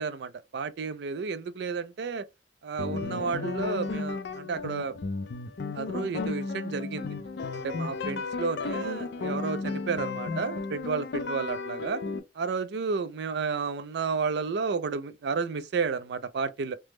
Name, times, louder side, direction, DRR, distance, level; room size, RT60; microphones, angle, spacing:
voice 1, 0.0-2.3 2.6-5.0 5.7-7.2 7.5-12.0 12.4-16.8, right 5 dB, 65° right, 0.4 m, -32 dB
sound 1, 2.8-12.2, left 4 dB, 65° left, 0.4 m, -34 dB
3.3 x 2.0 x 3.1 m
head